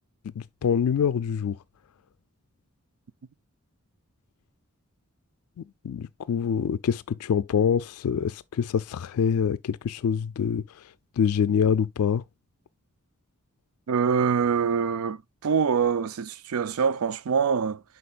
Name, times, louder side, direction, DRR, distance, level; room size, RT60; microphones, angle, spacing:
voice 1, 0.4-1.6 5.8-10.6 11.2-12.2, left 7 dB, 85° left, 0.3 m, -25 dB
voice 2, 13.9-17.8, right 6 dB, 70° right, 0.4 m, -24 dB
11.0 x 4.1 x 2.4 m
head